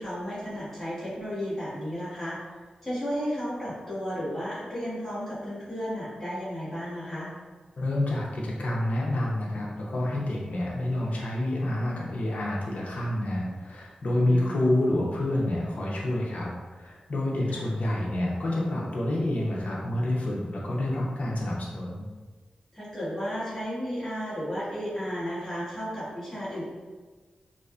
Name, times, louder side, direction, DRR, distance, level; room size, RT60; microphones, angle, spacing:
voice 1, 0.0-2.4 2.8-7.3 14.3-14.7 17.5-17.6 22.7-26.7, equal, 10° left, -13 dB, 1.3 m, -33 dB
voice 2, 7.8-16.5 16.8-22.0, left 1 dB, 65° left, -4 dB, 0.6 m, -28 dB
2.5 x 2.4 x 2.3 m, 1.4 s
wide cardioid pair, 135°, 3 cm